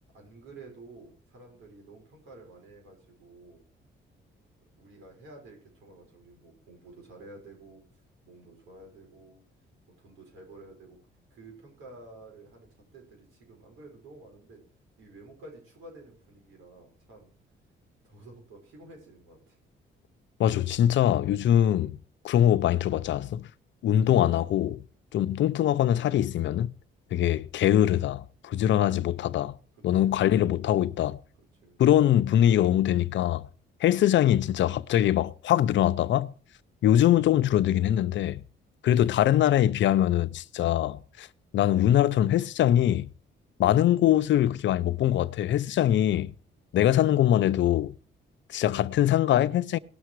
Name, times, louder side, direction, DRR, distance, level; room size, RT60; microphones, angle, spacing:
voice 1, 0.1-3.6 4.8-9.4 10.0-11.0 11.3-14.6 15.0-17.3 18.0-19.6 29.9-30.3 31.6-31.8, right 2 dB, 85° right, 5.9 m, -51 dB
voice 2, 20.4-22.0 22.2-23.5 23.8-24.8 25.1-26.7 27.1-29.5 29.8-31.2 31.8-33.5 33.8-36.3 36.8-38.4 38.8-41.3 41.5-43.1 43.6-46.3 46.7-47.9 48.5-49.8, left 11 dB, 70° left, 0.6 m, -23 dB
18.5 x 6.7 x 4.7 m
cardioid pair, 90°, 20 cm